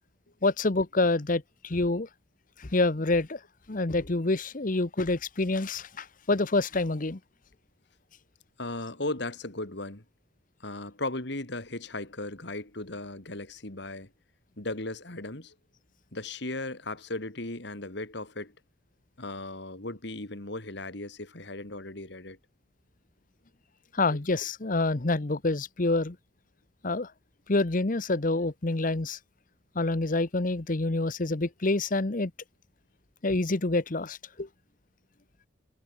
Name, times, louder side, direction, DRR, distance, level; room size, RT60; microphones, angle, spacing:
voice 1, 0.4-2.1 2.6-3.4 3.7-7.2 23.9-26.2 26.8-27.1 27.5-29.2 29.7-32.3 33.2-34.5, left 2 dB, 45° left, 1.0 m, -27 dB
voice 2, 8.6-10.0 10.6-14.1 14.6-15.5 16.1-18.5 19.2-22.4 24.1-24.2, left 2 dB, 60° left, 2.8 m, -36 dB
head